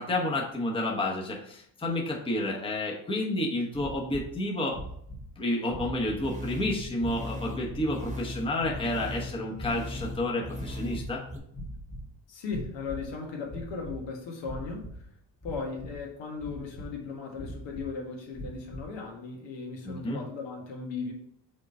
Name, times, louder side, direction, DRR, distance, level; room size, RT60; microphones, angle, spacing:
voice 1, 0.0-4.8 5.4-11.2 19.8-20.2, left 1 dB, 10° left, -1 dB, 1.0 m, -30 dB
sound 1, 3.7-4.3 4.7-5.3 5.7-6.3 6.6-7.2 7.6-8.2 8.6-9.3 9.5-10.2 10.5-11.2 11.5-12.1 12.5-13.1 13.4-14.0 14.4-15.0 15.4-16.0 16.4-17.0 17.4-17.9 18.3-18.9, equal, 35° left, 1.9 m, -41 dB
sound 2, 6.2-11.4, left 1 dB, 15° right, 1.3 m, -38 dB
voice 2, 12.3-14.9 15.4-21.1, left 4 dB, 75° left, 0 dB, 1.8 m, -37 dB
5.2 x 3.7 x 5.3 m, 0.69 s
cardioid pair, 125°, 45 cm